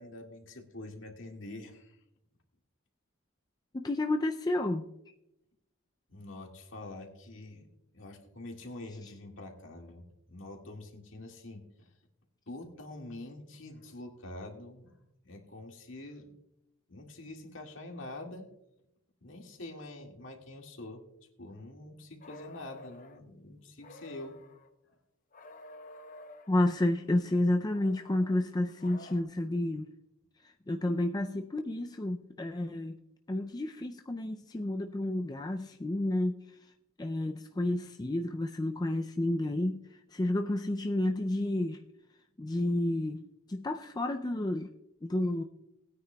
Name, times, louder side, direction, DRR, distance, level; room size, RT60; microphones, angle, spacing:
voice 1, 0.0-2.0 6.1-7.7 7.9-10.0 10.3-11.9 12.5-15.0 15.2-16.3 16.9-18.5 19.2-21.0 21.4-24.4, left 2 dB, 65° left, 2 dB, 2.0 m, -45 dB
voice 2, 3.7-4.8 26.5-29.9 30.4-33.0 33.3-36.4 37.0-39.8 40.1-41.8 42.4-43.2 43.5-44.7 45.0-45.4, left 1 dB, 20° left, 5 dB, 0.4 m, -30 dB
sound 1, 22.2-23.2 23.8-24.7 25.3-26.6 27.7-29.2, left 2 dB, 40° left, 0.7 m, -51 dB
19.5 x 9.5 x 2.3 m, 0.83 s
head